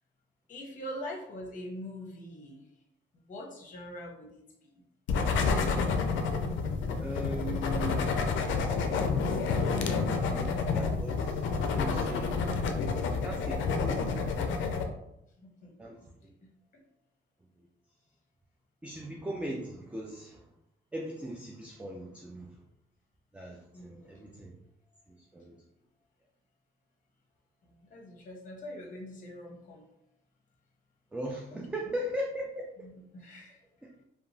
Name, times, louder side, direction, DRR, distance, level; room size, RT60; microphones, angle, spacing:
voice 1, 0.5-2.6 3.3-4.8 15.4-15.7 23.7-24.3 27.9-29.8 31.5-31.9 32.8-33.6, left 1 dB, 40° left, 0 dB, 0.7 m, -43 dB
sound 1, 5.1-14.8, left 4 dB, 75° left, 0.4 m, -29 dB
voice 2, 7.0-8.2 10.4-12.4 13.2-14.2 15.8-16.4 18.8-20.4 20.9-22.6 23.3-24.5 25.3-25.6 31.1-32.7, equal, 5° right, 0 dB, 0.3 m, -39 dB
2.8 x 2.2 x 2.6 m, 0.83 s
cardioid pair, 90°, 20 cm